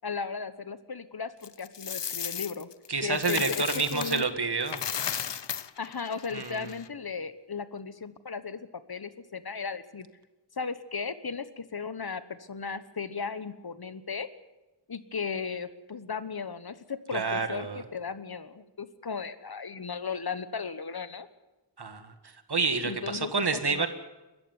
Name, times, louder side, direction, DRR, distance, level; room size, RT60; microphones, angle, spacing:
voice 1, 0.0-2.7 3.0-4.2 5.8-10.1 10.6-14.3 14.9-21.3 22.8-23.9, left 5 dB, 60° left, 14 dB, 1.2 m, -36 dB
Coin (dropping), 1.4-4.3 4.6-6.9, left 8 dB, 80° left, 0.8 m, -35 dB
voice 2, 2.9-4.8 6.3-6.7 17.1-17.8 21.8-22.1 22.5-23.9, right 4 dB, 65° right, 9 dB, 1.9 m, -29 dB
22.0 x 13.5 x 9.6 m, 1.1 s
wide cardioid pair, 55°, 42 cm